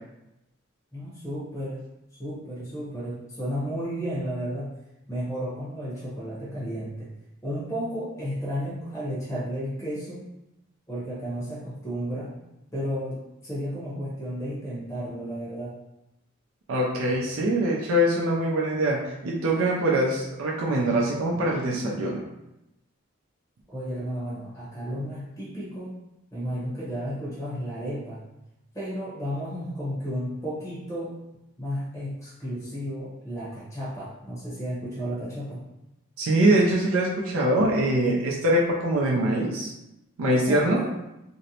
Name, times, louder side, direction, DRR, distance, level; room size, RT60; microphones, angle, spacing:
voice 1, 0.9-1.8 2.1-4.7 5.1-7.1 7.4-10.2 10.9-12.3 12.7-15.8 23.7-26.0 26.3-28.2 28.7-31.1 31.6-35.6 40.3-40.9, equal, 15° left, -9 dB, 0.8 m, -33 dB
voice 2, 16.7-22.2 36.2-39.7 40.2-40.8, right 1 dB, 80° right, -3 dB, 0.4 m, -23 dB
2.5 x 2.0 x 2.8 m, 0.90 s
head